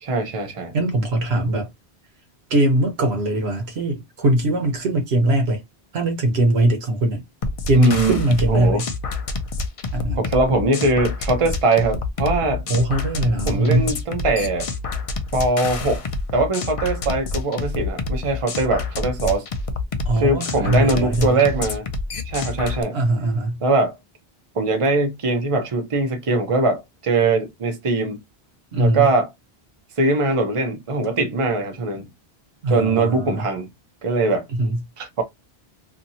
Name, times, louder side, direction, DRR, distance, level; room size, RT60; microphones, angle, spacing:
voice 1, 0.0-0.7 7.7-8.2 8.5-8.8 10.1-12.6 13.5-14.7 15.3-16.0 16.3-19.5 20.2-21.9 22.2-23.0 23.6-24.0 24.5-28.2 28.7-29.3 30.0-32.1 32.7-33.7 34.0-34.5 35.0-35.2, right 3 dB, 35° right, 0.7 m, -21 dB
voice 2, 0.7-1.7 2.5-5.6 5.9-7.2 7.7-8.9 9.9-10.2 12.7-13.9 20.1-21.4 22.9-23.6 28.7-29.1 32.6-33.5 34.5-34.8, right 1 dB, 85° right, 1.2 m, -21 dB
sound 1, 7.4-22.8, left 3 dB, 50° left, 0.4 m, -27 dB
2.7 x 2.7 x 2.7 m
omnidirectional pair, 1.0 m